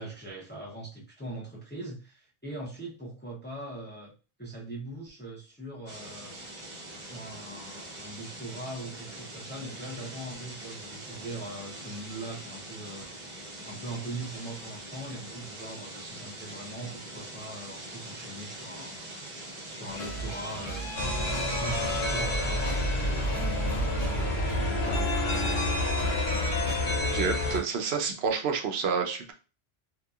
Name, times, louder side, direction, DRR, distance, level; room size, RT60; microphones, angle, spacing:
voice 1, 0.0-4.1 4.4-6.4 7.0-13.1 13.6-19.0 19.7-25.7 27.8-27.9, right 2 dB, 15° left, -3 dB, 0.5 m, -41 dB
sound 1, 5.9-22.2, right 1 dB, 35° right, 0.7 m, -43 dB
sound 2, 19.9-26.8, right 2 dB, 40° left, 0.8 m, -37 dB
sound 3, 20.9-27.6, left 1 dB, 75° left, 1.1 m, -28 dB
voice 2, 27.1-29.3, right 6 dB, 80° right, 4 dB, 0.8 m, -29 dB
2.8 x 2.2 x 2.3 m, 0.33 s
omnidirectional pair, 1.1 m